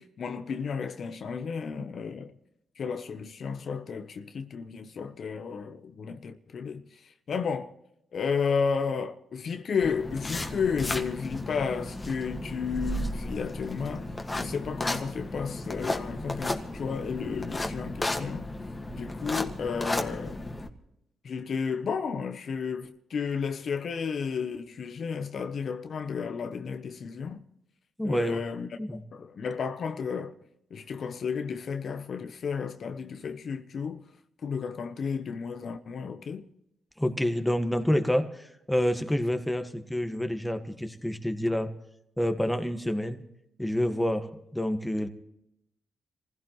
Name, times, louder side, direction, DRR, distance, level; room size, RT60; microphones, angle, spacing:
voice 1, 0.0-2.3 2.8-7.7 8.1-18.5 19.0-20.5 21.2-27.4 28.0-28.7 29.1-30.3 30.7-34.0 34.4-36.5, left 6 dB, 60° left, 0.9 m, -32 dB
sound 1, 9.8-20.7, left 1 dB, 20° left, 1.8 m, -34 dB
voice 2, 28.0-28.4 28.8-29.0 37.0-41.7 42.2-43.2 43.6-45.1, equal, 5° left, 1.6 m, -28 dB
26.5 x 16.0 x 3.1 m
cardioid pair, 80°, 0 cm